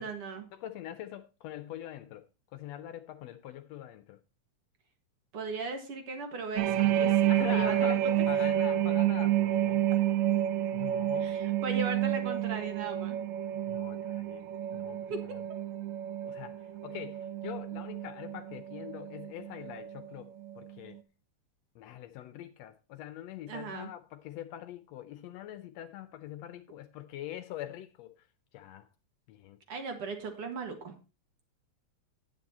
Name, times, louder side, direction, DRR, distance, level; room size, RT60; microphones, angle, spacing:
voice 1, 0.0-0.5 5.3-8.1 11.2-13.2 15.1-15.2 23.5-23.9 29.7-30.9, right 4 dB, 55° right, 2.0 m, -37 dB
voice 2, 0.5-2.2 2.5-4.2 6.8-10.0 10.7-11.4 13.7-15.0 15.3-15.5 16.2-20.3 20.6-21.0 21.7-28.1 28.5-28.9 29.3-29.6, left 12 dB, 75° left, 1.7 m, -44 dB
sound 1, 6.6-20.1 20.4-20.7, right 11 dB, 80° right, 2.1 m, -30 dB
9.1 x 8.3 x 4.2 m
omnidirectional pair, 3.3 m